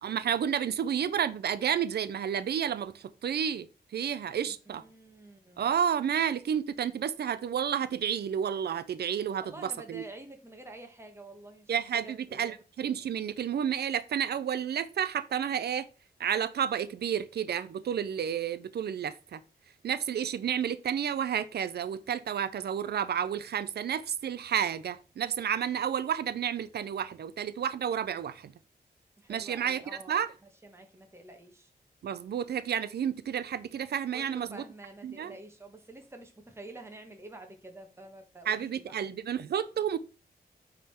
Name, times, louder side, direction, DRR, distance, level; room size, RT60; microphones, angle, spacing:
voice 1, 0.0-3.7 3.9-4.8 5.6-10.0 11.7-15.9 16.2-19.4 19.8-28.5 29.3-29.8 30.1-30.3 32.0-34.6 35.0-35.3 38.5-40.0, right 8 dB, 90° right, 0.5 m, -31 dB
voice 2, 4.4-5.8 9.4-12.6 29.2-30.2 30.6-31.7 34.1-38.9, right 2 dB, 15° right, 1.4 m, -48 dB
8.4 x 3.8 x 4.3 m
wide cardioid pair, 150°, 16 cm